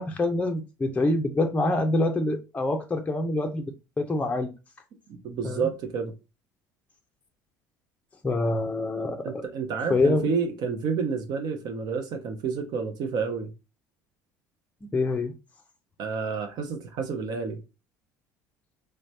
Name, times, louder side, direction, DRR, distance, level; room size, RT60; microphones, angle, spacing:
voice 1, 0.0-3.6 4.0-4.5 5.4-5.7 8.2-9.5 9.9-10.3 14.9-15.3, left 2 dB, 15° left, 0.5 m, -25 dB
voice 2, 5.1-6.1 9.2-13.5 16.0-17.6, right 5 dB, 45° right, 0.7 m, -30 dB
3.2 x 3.1 x 2.7 m
figure-of-eight pair, 60°, 9 cm